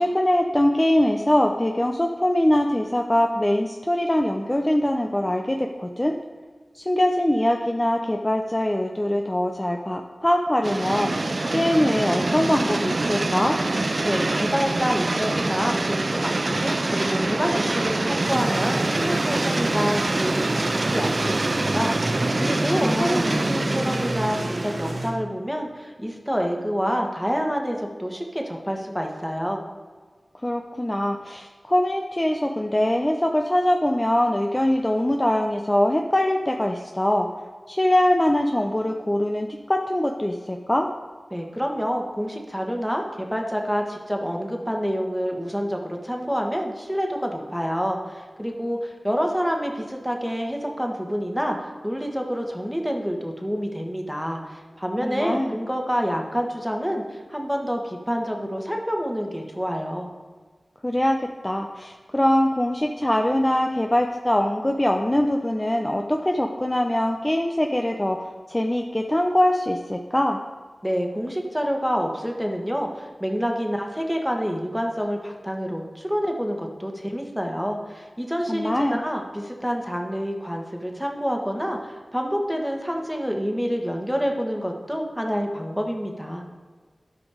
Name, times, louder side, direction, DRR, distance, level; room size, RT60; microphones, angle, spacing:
voice 1, 0.0-6.2 6.7-11.1 11.5-13.6 22.8-23.4 30.4-37.3 37.7-40.9 55.0-55.6 60.8-70.4 78.5-79.0, left 1 dB, 25° left, 2 dB, 0.7 m, -22 dB
sound 1, 10.6-25.1, right 2 dB, 55° right, 0.4 m, -25 dB
voice 2, 14.0-20.6 20.9-29.6 41.3-60.1 70.8-86.4, equal, ahead, 2 dB, 1.6 m, -27 dB
sound 2, 18.2-25.1, right 1 dB, 70° right, 1.6 m, -31 dB
11.5 x 5.3 x 5.0 m, 1.5 s
cardioid pair, 40°, 0 cm